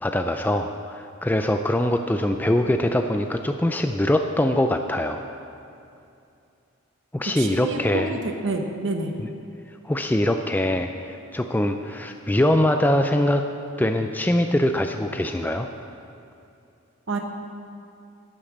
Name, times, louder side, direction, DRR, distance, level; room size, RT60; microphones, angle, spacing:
voice 1, 0.0-5.2 7.1-8.1 9.2-9.3 9.8-13.4 13.8-15.7, left 1 dB, 10° left, 6 dB, 0.3 m, -23 dB
voice 2, 7.3-9.1 17.1-17.2, right 2 dB, 55° right, 4 dB, 1.0 m, -28 dB
11.0 x 8.5 x 7.2 m, 2.6 s
head